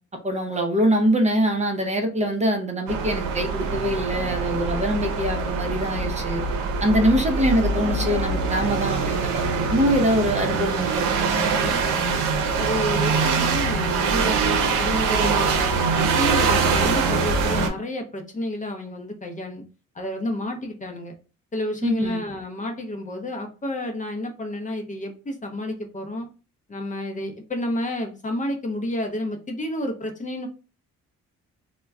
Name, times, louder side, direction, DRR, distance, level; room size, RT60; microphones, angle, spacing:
voice 1, 0.2-6.4 6.8-11.4 21.8-22.2, equal, 25° right, 3 dB, 0.6 m, -23 dB
sound 1, 2.9-17.7, right 4 dB, 85° right, 0.6 m, -23 dB
voice 2, 11.5-12.2 12.6-19.6 19.9-21.1 21.5-26.3 26.7-30.5, left 1 dB, 25° left, 3 dB, 0.6 m, -30 dB
2.2 x 2.1 x 3.5 m, 0.33 s
cardioid pair, 90°, 30 cm